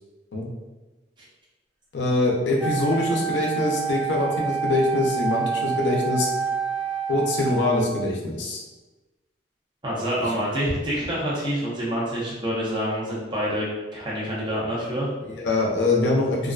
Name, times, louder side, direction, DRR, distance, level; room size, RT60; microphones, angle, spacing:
voice 1, 1.9-6.3 7.1-8.6 15.2-16.5, left 2 dB, 85° left, -1 dB, 0.5 m, -23 dB
Wind instrument woodwind instrument, 2.6-8.1, right 6 dB, 10° left, 0.4 m, -28 dB
voice 2, 9.8-15.1, equal, 25° right, -6 dB, 0.7 m, -27 dB
2.4 x 2.2 x 2.4 m, 1.2 s
head